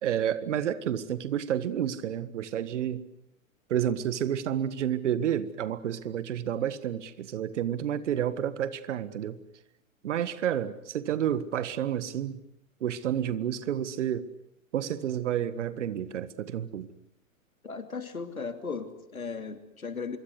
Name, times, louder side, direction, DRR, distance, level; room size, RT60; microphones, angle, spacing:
voice 1, 0.0-3.0 3.7-9.4 10.0-12.4 12.8-14.2 14.7-16.9, right 10 dB, 60° right, 1.7 m, -30 dB
voice 2, 17.6-20.2, left 5 dB, 80° left, 3.1 m, -36 dB
25.5 x 23.5 x 8.2 m
figure-of-eight pair, 105°, 41 cm